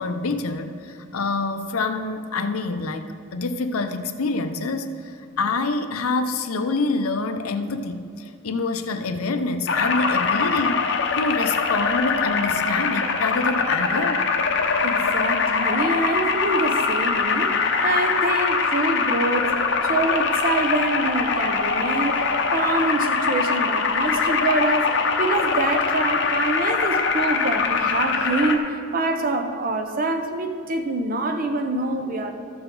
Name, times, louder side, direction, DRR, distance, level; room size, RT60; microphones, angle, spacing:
voice 1, 0.0-14.3, left 3 dB, 90° left, 8 dB, 0.7 m, -26 dB
sound 1, 9.7-28.6, left 5 dB, 55° left, 0.7 m, -23 dB
voice 2, 14.8-19.6 19.9-22.2 22.5-32.3, right 2 dB, 40° right, 6 dB, 0.7 m, -25 dB
13.5 x 7.0 x 3.8 m, 2.4 s
head